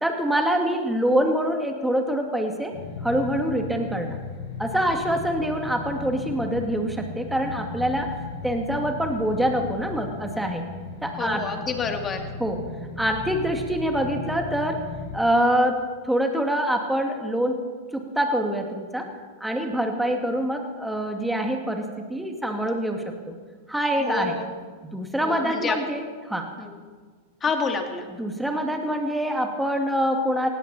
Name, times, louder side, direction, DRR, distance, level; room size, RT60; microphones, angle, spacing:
voice 1, 0.0-2.7 3.0-4.2 4.6-8.2 8.4-10.7 11.0-11.5 12.4-12.6 13.0-14.8 15.1-17.6 17.9-19.1 19.4-23.3 23.7-24.4 24.8-26.5 28.1-30.5, right 1 dB, 5° right, 3 dB, 2.3 m, -25 dB
sound 1, 2.7-15.2, left 4 dB, 60° left, 3.9 m, -36 dB
voice 2, 11.2-12.2 24.0-24.4 25.2-25.8 26.6-26.8 27.4-28.0, left 5 dB, 25° left, 4 dB, 2.3 m, -28 dB
18.5 x 16.5 x 4.4 m, 1.5 s
hypercardioid pair, 105°, 0 cm